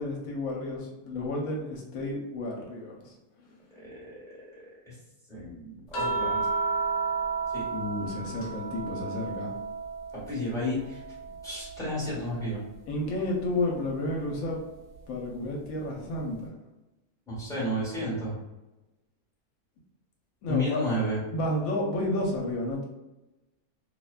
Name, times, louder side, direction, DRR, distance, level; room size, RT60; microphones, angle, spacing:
voice 1, 0.0-3.1 7.7-9.5 12.9-14.6 15.1-16.5 20.4-20.8 21.3-22.8, left 1 dB, 75° left, -1 dB, 1.0 m, -31 dB
voice 2, 3.7-4.1 5.3-6.4 7.5-7.6 10.2-11.0 11.4-12.6 17.3-18.3 20.5-21.2, left 1 dB, 5° left, -8 dB, 0.9 m, -31 dB
sound 1, 5.9-10.4 10.8-12.4 13.9-14.1, right 4 dB, 55° left, 0.8 m, -32 dB
2.6 x 2.1 x 2.3 m, 1.0 s
omnidirectional pair, 1.6 m